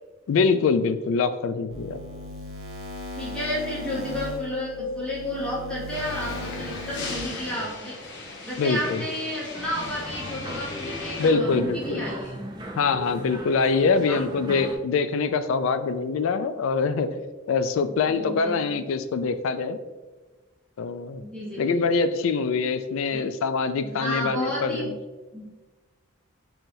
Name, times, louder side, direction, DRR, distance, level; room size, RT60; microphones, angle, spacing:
voice 1, 0.3-2.0 8.6-9.0 11.2-12.1 12.8-17.1 17.5-19.8 20.8-21.2 21.6-25.0, left 4 dB, 80° left, 11 dB, 0.3 m, -24 dB
sound 1, 1.7-7.2, left 1 dB, 80° right, 0.6 m, -37 dB
voice 2, 3.1-8.0 8.4-12.3 13.7-14.2 18.1-18.8 21.2-21.9 22.2-22.3 23.1-23.2 23.8-24.9 25.3-25.4, left 1 dB, 5° left, -7 dB, 0.9 m, -32 dB
sound 2, 5.9-11.3, left 2 dB, 55° left, 0.7 m, -36 dB
sound 3, 9.5-14.8, right 1 dB, 20° right, 0.4 m, -39 dB
5.4 x 2.9 x 2.6 m, 1.2 s
head